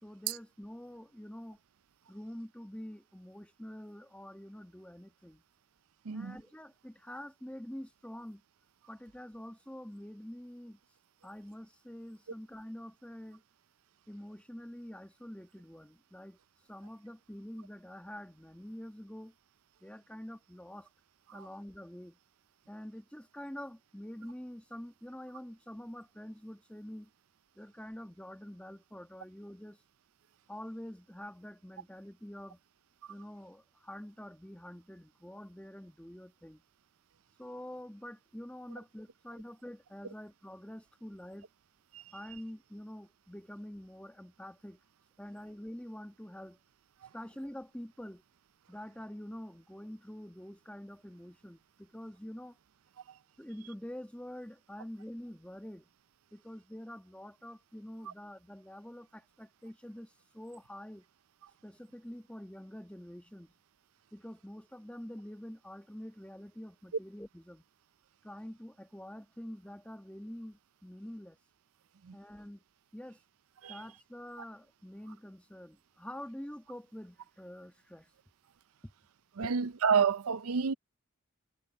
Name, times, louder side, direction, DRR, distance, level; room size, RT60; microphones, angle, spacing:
voice 1, 0.0-1.6 2.1-5.4 6.1-8.4 8.9-10.8 11.2-13.4 14.1-16.4 16.7-19.3 19.8-20.9 21.3-22.2 22.7-27.1 27.6-29.8 30.5-32.6 33.1-36.6 37.4-41.5 42.1-44.8 45.2-46.6 47.1-48.2 48.7-52.6 53.4-55.9 56.3-61.1 61.6-63.5 64.1-67.6 68.2-71.4 72.1-72.6 72.9-73.2 73.7-78.1 78.8-78.9 79.4-79.5, equal, 5° left, 1.2 m, -46 dB
voice 2, 6.0-6.4 21.3-21.5 41.9-42.0 47.0-47.1 53.1-53.2 58.1-58.2 72.0-72.2 73.6-73.8 79.4-80.7, right 6 dB, 80° right, 0.5 m, -30 dB
head